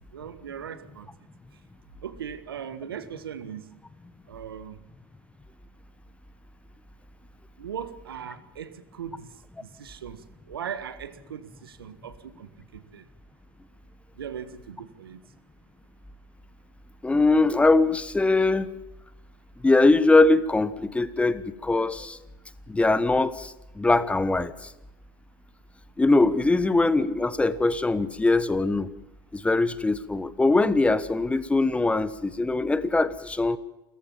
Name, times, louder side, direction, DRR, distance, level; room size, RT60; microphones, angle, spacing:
voice 1, 0.1-1.1 1.5-1.6 2.0-3.7 4.3-4.8 7.6-13.1 14.1-15.2, right 8 dB, 90° right, 1.8 m, -39 dB
voice 2, 17.0-18.7 19.6-22.2 22.7-24.7 26.0-28.9 29.3-33.6, left 2 dB, 10° left, 1.3 m, -22 dB
28.5 x 15.0 x 7.5 m
hypercardioid pair, 100°, 12 cm